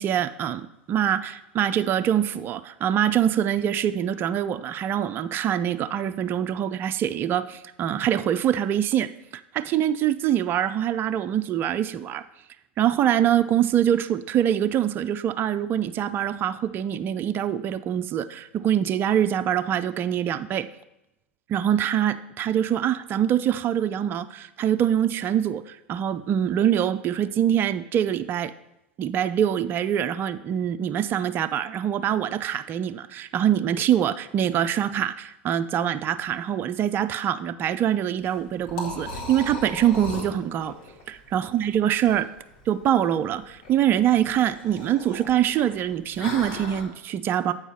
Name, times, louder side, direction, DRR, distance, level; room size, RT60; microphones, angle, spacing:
voice 1, 0.0-12.2 12.8-20.7 21.5-28.5 29.0-40.8 41.1-42.3 42.7-47.5, right 10 dB, 35° right, 11 dB, 0.4 m, -24 dB
Liquid, 38.1-46.8, left 2 dB, 55° left, 2.1 m, -38 dB
8.0 x 4.6 x 5.6 m, 0.88 s
hypercardioid pair, 90°, 6 cm